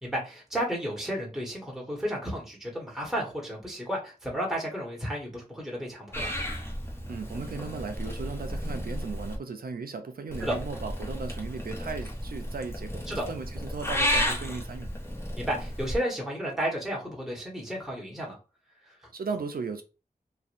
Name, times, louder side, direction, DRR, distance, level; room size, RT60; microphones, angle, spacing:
voice 1, 0.0-6.3 10.4-10.6 13.1-13.3 15.4-18.3 18.9-19.0, equal, 5° right, 1.3 m, -32 dB
Purr / Meow, 6.1-9.4 10.3-16.0, equal, 15° left, 0.9 m, -33 dB
voice 2, 7.1-14.9 19.1-19.8, right 4 dB, 75° right, 0.6 m, -36 dB
3.2 x 2.4 x 2.6 m
wide cardioid pair, 55°, 15 cm